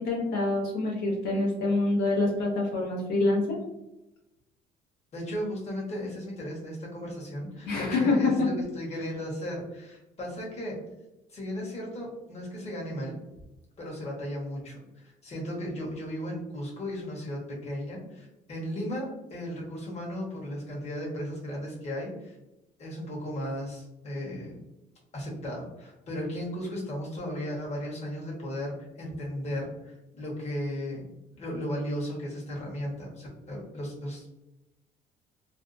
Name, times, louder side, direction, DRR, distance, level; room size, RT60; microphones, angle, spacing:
voice 1, 0.0-3.6 7.6-8.5, left 2 dB, 80° left, -4 dB, 0.9 m, -26 dB
voice 2, 5.1-10.8 11.3-13.2 13.8-22.4 22.8-24.6 25.1-31.1 31.4-34.4, equal, 40° left, -3 dB, 1.2 m, -35 dB
2.6 x 2.2 x 2.5 m, 0.94 s
cardioid pair, 110°, 17 cm